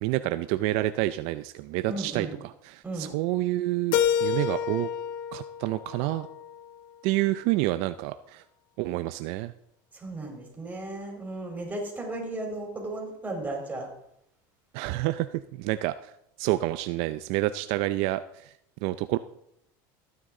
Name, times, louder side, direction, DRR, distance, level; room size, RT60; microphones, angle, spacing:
voice 1, 0.0-4.9 5.3-6.3 7.0-8.4 8.8-9.5 14.7-16.1 16.4-18.5 18.8-19.2, right 17 dB, 65° right, 12 dB, 0.5 m, -28 dB
voice 2, 1.9-2.3 2.8-3.1 10.0-13.9, right 2 dB, 15° right, 0 dB, 4.2 m, -35 dB
Keyboard (musical), 3.9-6.8, left 9 dB, 80° left, 0.9 m, -29 dB
14.5 x 9.7 x 3.8 m, 0.78 s
supercardioid pair, 115°, 11 cm